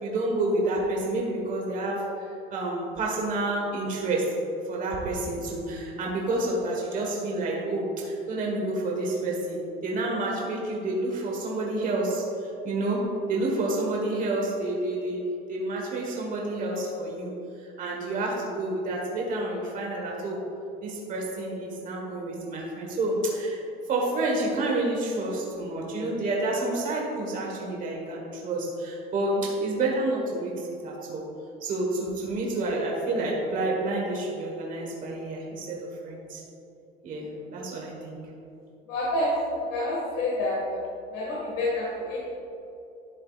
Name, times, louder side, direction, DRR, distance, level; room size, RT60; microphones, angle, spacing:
voice 1, 0.0-4.4 4.7-17.3 17.6-20.4 20.8-23.6 23.9-31.2 31.6-36.4 37.0-38.2, right 2 dB, 40° right, -2 dB, 1.4 m, -29 dB
voice 2, 38.9-40.6 41.1-42.2, left 1 dB, 90° left, -6 dB, 1.9 m, -28 dB
11.0 x 7.6 x 2.4 m, 2.8 s
cardioid pair, 145°, 21 cm